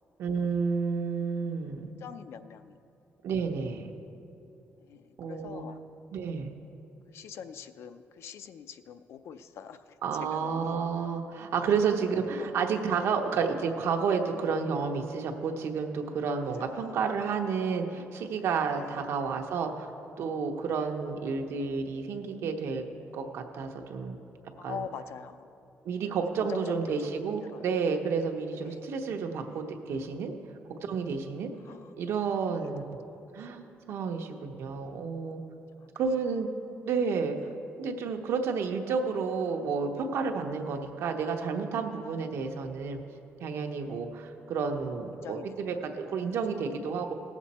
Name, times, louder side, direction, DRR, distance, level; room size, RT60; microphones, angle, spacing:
voice 1, 0.2-1.9 3.2-3.9 5.2-5.6 6.1-6.5 10.0-19.9 20.2-22.8 23.1-24.2 24.6-24.8 25.8-30.3 30.8-31.5 32.0-32.8 33.3-35.4 36.0-36.5 36.8-37.4 37.8-43.0 43.4-47.1, right 5 dB, 75° right, 3 dB, 0.9 m, -31 dB
voice 2, 2.0-2.8 4.8-5.8 7.1-10.8 12.4-12.6 16.6-17.0 18.8-19.0 20.8-20.9 24.6-25.5 26.4-27.7 28.6-28.9 29.5-29.7 31.6-31.9 32.5-32.7 35.2-35.4 37.4-37.6 39.6-39.7 43.8-44.0 45.2-45.8 46.5-46.6, left 7 dB, 70° left, 11 dB, 0.5 m, -44 dB
17.5 x 7.2 x 4.2 m, 2.8 s
cardioid pair, 175°, 5 cm